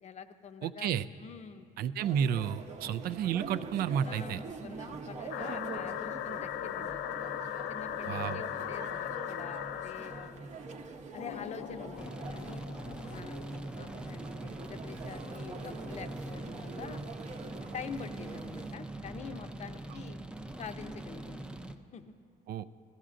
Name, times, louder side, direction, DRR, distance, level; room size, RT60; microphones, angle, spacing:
voice 1, 0.0-0.9 1.2-1.7 2.8-3.0 4.0-7.3 7.7-10.8 11.1-12.6 13.0-13.4 13.8-17.0 17.7-20.2 20.6-22.1, left 6 dB, 40° left, 9 dB, 0.6 m, -46 dB
voice 2, 0.6-1.1 1.8-4.4 8.1-8.4 22.5-22.7, right 9 dB, 65° right, 15 dB, 0.4 m, -31 dB
sound 1, 2.0-18.7, right 4 dB, 45° right, 0.8 m, -45 dB
sound 2, 5.3-10.3 11.2-13.6, left 11 dB, 85° left, 0.5 m, -38 dB
sound 3, 12.0-21.8, right 1 dB, 5° right, 0.5 m, -42 dB
15.0 x 14.5 x 2.5 m, 2.4 s
cardioid pair, 110°, 17 cm